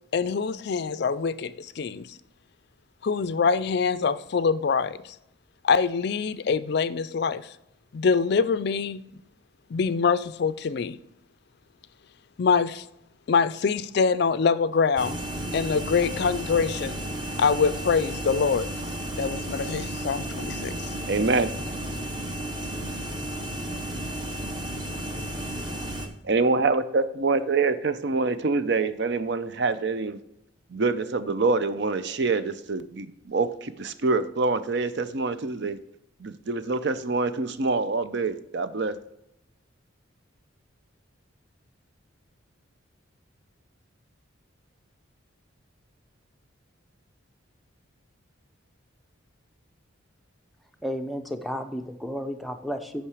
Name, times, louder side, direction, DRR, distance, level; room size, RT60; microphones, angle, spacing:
voice 1, 0.1-2.2 3.0-5.1 5.6-7.4 7.9-9.0 9.7-11.0 12.4-12.9 13.3-15.2 15.5-17.0 17.4-18.7 19.2-20.9, left 5 dB, 50° left, 0.4 m, -24 dB
sound 1, 15.0-26.1, right 1 dB, 20° right, 0.9 m, -33 dB
voice 2, 21.1-21.5 26.2-30.2 30.7-35.8 36.2-39.0, right 3 dB, 55° right, 0.5 m, -25 dB
voice 3, 50.8-53.1, equal, ahead, 0.5 m, -32 dB
8.7 x 5.6 x 4.8 m
head